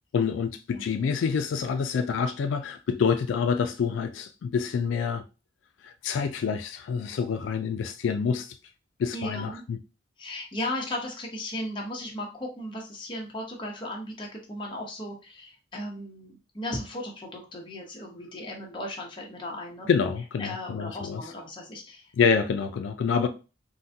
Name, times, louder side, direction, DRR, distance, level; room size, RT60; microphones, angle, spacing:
voice 1, 0.1-5.2 5.8-8.5 9.0-9.8 19.9-21.2 22.2-23.3, left 6 dB, 85° left, 0.3 m, -27 dB
voice 2, 9.1-9.6 10.2-19.9 20.4-22.1, left 1 dB, 25° left, 0.8 m, -36 dB
3.7 x 2.2 x 2.7 m
head